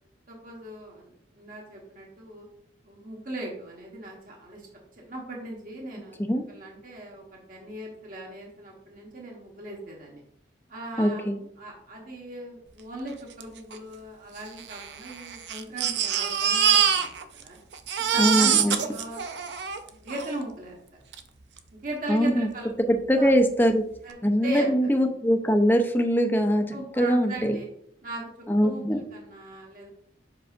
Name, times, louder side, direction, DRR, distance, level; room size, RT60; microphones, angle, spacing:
voice 1, 0.3-2.5 2.8-4.7 5.0-6.2 6.5-10.2 10.7-11.2 11.6-17.1 17.4-17.6 18.1-19.3 19.8-20.8 21.7-22.8 23.1-23.3 24.0-24.7 26.7-27.7 28.0-29.9, right 1 dB, 50° right, -1 dB, 1.4 m, -38 dB
voice 2, 11.0-11.4 18.2-18.8 22.1-22.5 22.9-23.8 24.2-26.6 27.0-27.6 28.5-29.0, equal, 10° left, 5 dB, 0.6 m, -22 dB
Crying sobbing, 13.4-13.5 13.7-13.8 14.6-17.5 17.7-20.3 21.1-21.2 21.6-21.7, right 8 dB, 70° right, 0.6 m, -25 dB
7.7 x 5.5 x 2.6 m, 0.69 s
head